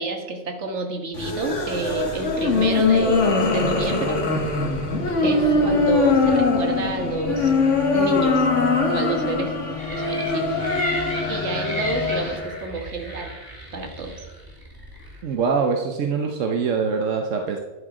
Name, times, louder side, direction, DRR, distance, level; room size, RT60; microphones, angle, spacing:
voice 1, 0.0-4.2 5.2-7.5 7.9-8.5 8.9-9.5 9.9-10.6 11.3-13.4 13.7-14.2, right 3 dB, 65° right, 4 dB, 1.7 m, -29 dB
sound 1, 1.1-12.4, left 3 dB, 75° left, 1.9 m, -22 dB
sound 2, 4.9-12.6, left 5 dB, 35° left, 1.0 m, -33 dB
sound 3, 9.8-15.2, equal, 15° right, 2.5 m, -34 dB
voice 2, 15.2-17.6, right 5 dB, 85° right, 3 dB, 1.3 m, -23 dB
11.0 x 8.0 x 5.0 m, 1.1 s
omnidirectional pair, 1.3 m